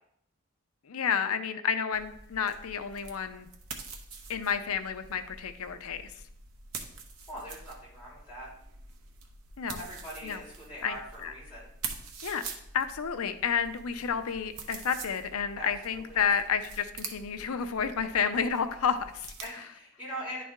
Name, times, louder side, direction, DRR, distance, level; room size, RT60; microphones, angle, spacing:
voice 1, 0.9-3.5 4.3-6.0 9.6-9.9 10.2-10.4 10.8-11.0 11.2-11.3 12.2-12.4 12.7-19.3, left 7 dB, 80° left, 9 dB, 0.6 m, -30 dB
sound 1, 1.9-19.5, right 4 dB, 75° right, 0.9 m, -45 dB
voice 2, 7.3-8.5 9.8-11.7 15.5-16.2 19.4-20.4, equal, 5° right, -7 dB, 2.7 m, -42 dB
10.0 x 4.2 x 3.6 m, 0.72 s
head